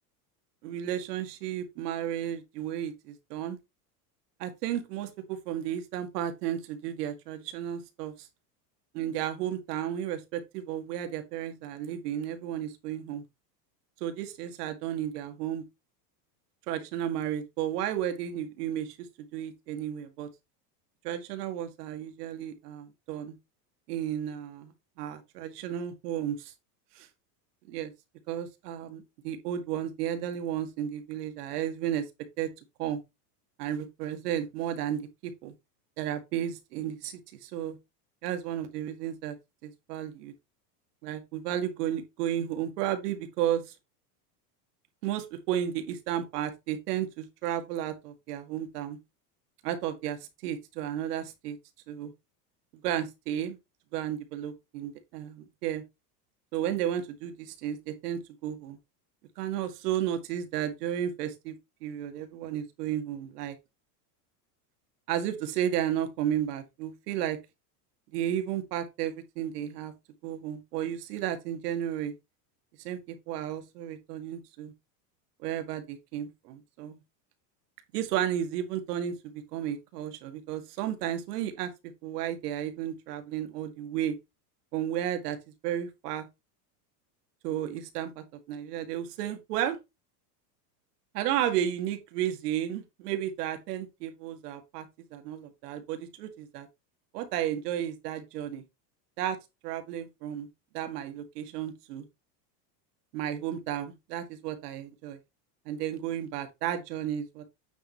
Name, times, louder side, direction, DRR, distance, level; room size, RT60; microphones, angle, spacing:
voice 1, 0.6-3.6 4.4-8.3 8.9-13.2 14.0-15.6 16.7-19.1 19.3-20.3 21.0-23.4 23.9-24.7 25.0-26.5 26.9-27.1 27.7-27.9 28.3-32.0 32.4-32.5 32.8-33.0 33.6-35.1 35.4-35.5 36.0-37.8 38.2-39.4 39.6-40.3 41.0-43.8 45.0-49.0 49.6-51.6 51.9-52.1 52.8-53.6 53.9-55.8 56.5-58.8 59.4-61.6 61.8-63.6 65.1-67.4 68.1-69.9 70.2-72.1 72.8-74.7 75.4-77.0 77.9-81.7 82.0-84.2 84.7-85.4 85.6-86.3 87.4-89.8 91.1-94.9 95.1-96.7 97.1-98.6 99.2-99.4 99.6-100.5 100.7-102.1 103.1-105.2 105.7-107.5, right 10 dB, 75° right, 2.1 m, -33 dB
9.3 x 3.8 x 4.4 m
supercardioid pair, 130°, 48 cm